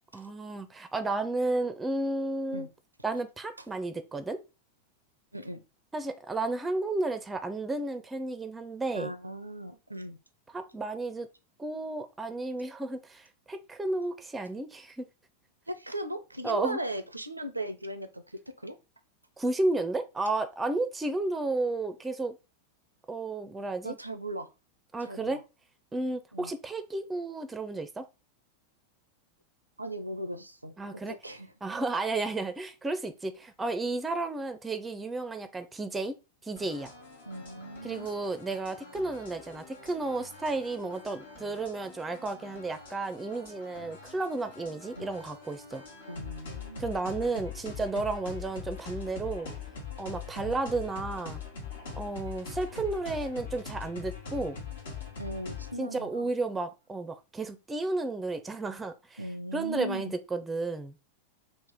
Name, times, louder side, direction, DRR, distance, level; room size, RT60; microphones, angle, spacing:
voice 1, 0.1-2.7 3.0-4.4 5.9-9.1 10.5-11.3 11.6-15.1 16.4-16.8 19.4-22.4 23.1-23.9 24.9-25.4 25.9-28.0 30.8-31.2 31.6-36.1 36.4-36.9 37.8-45.8 46.8-49.5 50.0-51.4 52.0-54.6 55.8-59.2 59.5-60.9, right 2 dB, 10° right, 0.4 m, -32 dB
voice 2, 8.9-10.2 15.7-18.8 23.8-24.5 25.0-25.4 26.3-26.5 29.8-31.5 37.3-38.1 44.9-45.1 46.1-46.8 50.5-50.6 55.2-56.3 59.2-60.1, right 1 dB, 85° right, 0.4 m, -38 dB
sound 1, 36.6-55.8, left 5 dB, 65° left, 1.1 m, -43 dB
3.3 x 2.4 x 3.6 m
figure-of-eight pair, 90°, 0 cm